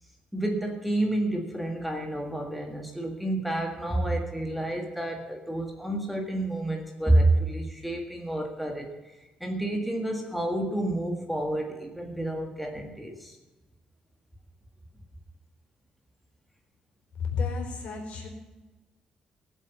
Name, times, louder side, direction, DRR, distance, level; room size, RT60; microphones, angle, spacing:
voice 1, 0.3-8.9 9.4-13.3, right 1 dB, ahead, 2 dB, 1.7 m, -29 dB
voice 2, 17.3-18.3, left 4 dB, 65° left, 2 dB, 4.3 m, -31 dB
19.5 x 7.9 x 7.1 m, 1.1 s
cardioid pair, 160°, 2 cm